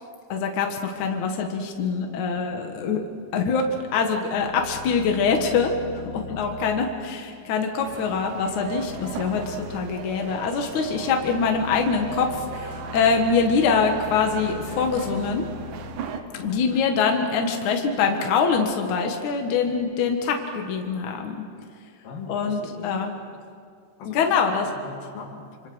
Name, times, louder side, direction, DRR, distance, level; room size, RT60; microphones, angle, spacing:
voice 1, 0.3-3.0 3.3-3.6 3.9-5.7 6.1-15.4 16.4-21.4 22.3-23.1 24.1-24.7, left 5 dB, 65° left, 3 dB, 2.9 m, -24 dB
sound 1, 4.3-16.8, left 5 dB, 35° left, 4.5 m, -42 dB
sound 2, 7.8-16.2, right 8 dB, 75° right, 2.9 m, -38 dB
voice 2, 16.3-16.8 22.0-23.1 24.0-24.3 24.8-25.7, left 4 dB, 90° left, 2 dB, 4.3 m, -41 dB
26.5 x 26.0 x 6.3 m, 2.2 s
omnidirectional pair, 3.9 m